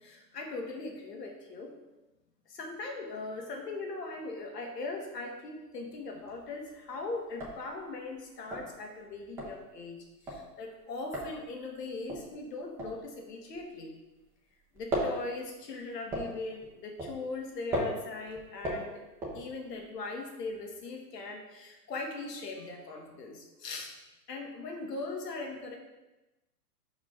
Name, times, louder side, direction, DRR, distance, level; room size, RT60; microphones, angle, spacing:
voice 1, 0.0-1.7 2.5-13.9 14.7-19.0 19.3-23.9 24.3-25.8, left 3 dB, 75° left, 1 dB, 1.9 m, -40 dB
sound 1, 6.0-6.6 6.9-7.0 7.2-14.3 14.6-19.9, equal, 5° right, 0.5 m, -37 dB
5.1 x 4.9 x 5.8 m, 1.0 s
hypercardioid pair, 135°, 49 cm